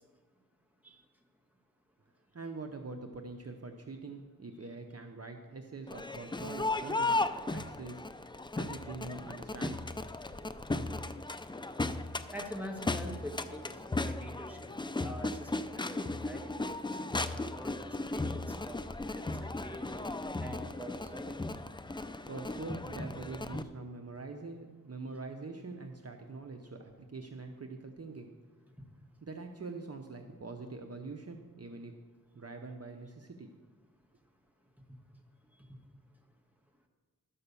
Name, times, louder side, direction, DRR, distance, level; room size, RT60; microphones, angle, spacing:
voice 1, 2.3-8.1 8.5-10.0 22.3-28.3 29.2-31.9 32.3-33.5, right 3 dB, 45° right, 4 dB, 0.8 m, -44 dB
Crowd, 5.9-23.6, left 2 dB, 15° left, 0.4 m, -36 dB
voice 2, 12.3-14.7 15.0-20.0 20.4-21.4, equal, 5° right, 2 dB, 1.5 m, -46 dB
12.0 x 5.6 x 6.9 m, 1.4 s
wide cardioid pair, 70°, 35 cm